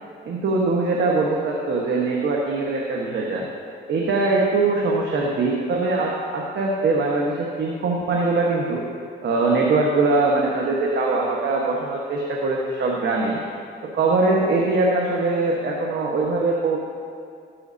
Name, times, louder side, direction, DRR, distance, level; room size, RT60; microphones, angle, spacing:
voice 1, 0.2-3.5 3.9-8.8 9.2-13.4 13.9-16.8, right 3 dB, 60° right, -2 dB, 1.4 m, -22 dB
14.0 x 11.5 x 2.8 m, 2.3 s
cardioid pair, 90°, 20 cm